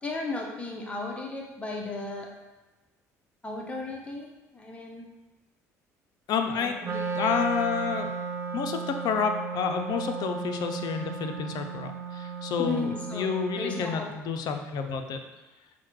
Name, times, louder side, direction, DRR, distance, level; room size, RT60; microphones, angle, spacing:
voice 1, 0.0-2.3 3.4-5.1 6.5-7.0 12.6-13.3 13.5-14.1, left 3 dB, 15° left, -1 dB, 0.7 m, -35 dB
voice 2, 6.3-6.8 7.2-8.1 8.5-15.2, left 6 dB, 55° left, 6 dB, 0.4 m, -29 dB
Wind instrument woodwind instrument, 6.8-14.0, right 5 dB, 30° right, 0.5 m, -34 dB
5.5 x 2.2 x 3.1 m, 1.1 s
hypercardioid pair, 60°, 8 cm